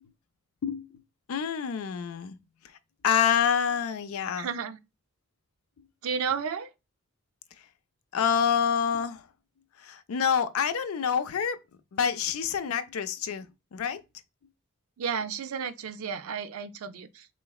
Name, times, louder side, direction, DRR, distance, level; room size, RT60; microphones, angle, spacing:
voice 1, 1.3-2.4 3.0-4.5 8.1-9.3 9.8-11.6 11.9-14.0, left 7 dB, 90° left, 0.4 m, -27 dB
voice 2, 4.3-4.8 6.0-6.7 15.0-17.3, right 6 dB, 90° right, 0.4 m, -32 dB
3.8 x 3.1 x 2.3 m
head